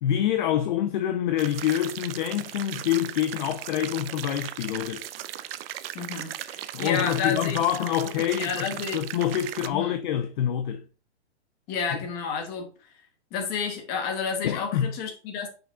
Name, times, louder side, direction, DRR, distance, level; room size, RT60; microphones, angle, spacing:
voice 1, 0.0-5.1 6.7-8.7 8.9-10.8 11.9-12.0 14.4-14.9, left 11 dB, 45° left, 0.6 m, -26 dB
sound 1, 1.4-9.7, right 12 dB, 55° right, 0.6 m, -37 dB
voice 2, 5.9-7.6 8.4-9.0 9.7-9.9 11.7-12.7 13.3-15.5, left 6 dB, 25° left, 1.5 m, -30 dB
5.9 x 4.9 x 3.5 m
hypercardioid pair, 155°, 35 cm